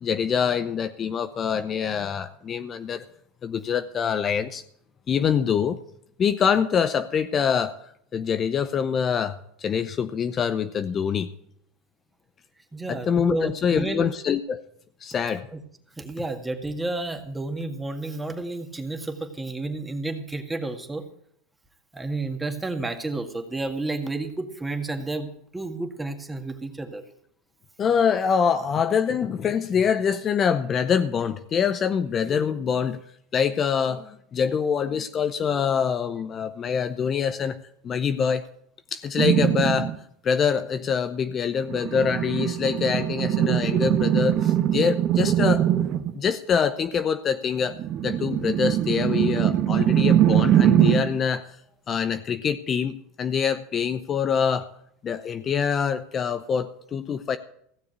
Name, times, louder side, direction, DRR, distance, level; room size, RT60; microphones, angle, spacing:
voice 1, 0.0-3.0 3.4-4.6 5.1-5.8 6.2-7.8 8.1-11.3 12.9-14.6 15.0-15.5 27.8-33.0 33.3-37.6 37.8-38.4 38.9-39.9 40.2-45.7 46.1-51.4 51.9-54.7 55.0-57.4, left 7 dB, 35° left, 11 dB, 0.7 m, -25 dB
voice 2, 12.7-14.1 15.5-15.6 16.0-21.0 21.9-25.3 25.5-27.0, right 2 dB, 10° right, 5 dB, 1.9 m, -31 dB
sound 1, 39.2-39.9 41.6-46.2 47.7-51.2, right 11 dB, 45° right, 1.1 m, -22 dB
16.0 x 7.0 x 8.2 m, 0.70 s
hypercardioid pair, 95°, 0 cm